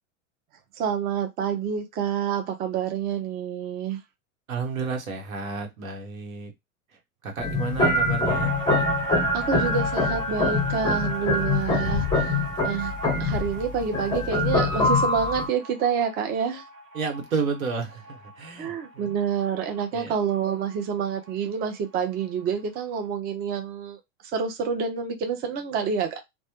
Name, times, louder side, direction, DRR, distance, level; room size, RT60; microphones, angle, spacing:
voice 1, 0.8-4.0 9.3-12.3 12.6-12.9 13.2-16.6 18.6-24.0 24.3-26.2, right 7 dB, 25° right, 0.4 m, -28 dB
voice 2, 4.5-6.5 7.2-8.5 16.9-19.1 19.9-20.2, right 5 dB, 85° right, 0.9 m, -31 dB
sound 1, 7.4-15.5, left 2 dB, 10° left, 0.7 m, -24 dB
sound 2, 8.2-21.4 21.7-21.8 22.0-22.8, equal, 50° right, 1.3 m, -37 dB
2.1 x 2.1 x 2.8 m
hypercardioid pair, 105°, 40 cm